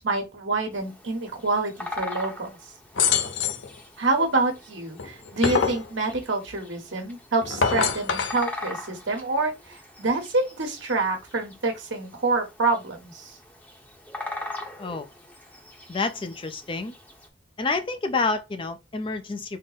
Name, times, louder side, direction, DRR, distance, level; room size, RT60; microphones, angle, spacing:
voice 1, 0.0-2.6 4.0-13.3, right 3 dB, 75° right, 1.2 m, -27 dB
Bird vocalization bird call bird song, 0.7-17.3, left 2 dB, 10° left, 0.8 m, -41 dB
sound 1, 3.0-3.7 5.0-5.8 7.4-8.4, left 6 dB, 75° left, 0.6 m, -24 dB
voice 2, 15.9-16.9 17.6-19.6, left 3 dB, 25° left, 0.4 m, -28 dB
3.8 x 2.0 x 3.9 m
head